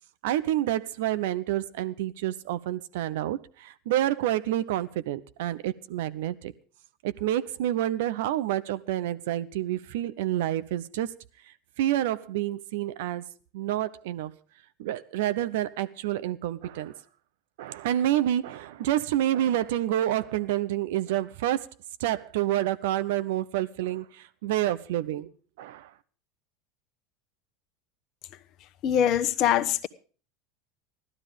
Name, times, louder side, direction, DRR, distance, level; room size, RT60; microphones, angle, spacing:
voice 1, 0.2-6.5 7.0-11.1 11.8-13.3 13.5-14.3 14.8-16.9 17.6-21.7 22.0-25.3 25.6-25.9, right 13 dB, 70° right, 0.8 m, -28 dB
voice 2, 28.8-29.9, left 10 dB, 50° left, 1.0 m, -23 dB
15.5 x 12.0 x 5.2 m
hypercardioid pair, 75°, 0 cm